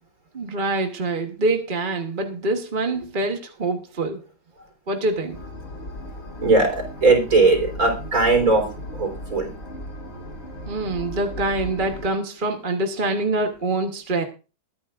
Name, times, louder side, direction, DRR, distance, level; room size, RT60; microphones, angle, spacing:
voice 1, 0.3-4.2 4.9-5.4 10.7-14.2, right 2 dB, 30° right, 4 dB, 1.2 m, -25 dB
sound 1, 5.3-12.1, equal, 35° left, 5.2 m, -36 dB
voice 2, 6.4-9.5, right 3 dB, 50° right, 3 dB, 4.3 m, -19 dB
22.0 x 9.3 x 2.5 m, 0.33 s
omnidirectional pair, 1.9 m